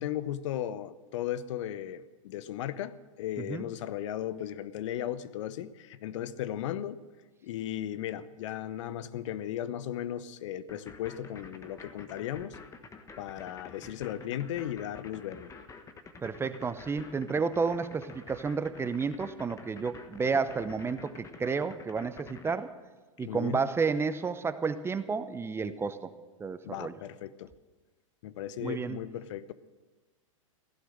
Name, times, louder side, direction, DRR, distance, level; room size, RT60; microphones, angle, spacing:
voice 1, 0.0-7.0 7.4-12.6 13.2-15.5 23.2-23.6 26.6-27.5 28.2-29.5, left 11 dB, 65° left, 16 dB, 0.8 m, -36 dB
sound 1, 10.7-22.6, left 4 dB, 20° left, 1.3 m, -48 dB
voice 2, 16.2-22.7 23.2-26.1 26.4-26.9 28.6-29.0, right 5 dB, 15° right, 12 dB, 0.7 m, -31 dB
16.0 x 11.5 x 6.6 m, 1.3 s
hypercardioid pair, 110°, 17 cm